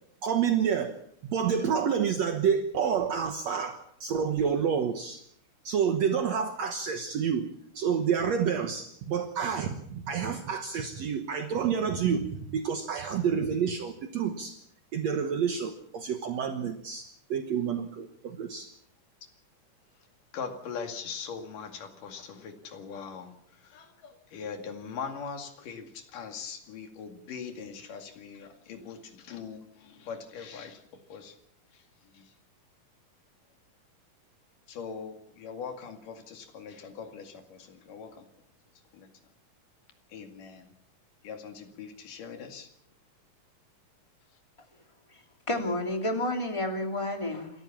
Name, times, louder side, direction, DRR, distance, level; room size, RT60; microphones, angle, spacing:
voice 1, 0.2-1.0 1.2-5.2 5.6-7.5 7.7-14.6 14.9-18.7, right 7 dB, 60° right, 6 dB, 2.2 m, -29 dB
voice 2, 20.3-31.4 31.7-32.4 34.7-38.3 38.9-39.1 40.1-40.7 41.2-42.7, left 6 dB, 80° left, 6 dB, 3.8 m, -41 dB
voice 3, 45.5-47.5, left 1 dB, 10° left, 4 dB, 2.3 m, -30 dB
27.5 x 13.5 x 7.4 m, 0.70 s
omnidirectional pair, 3.7 m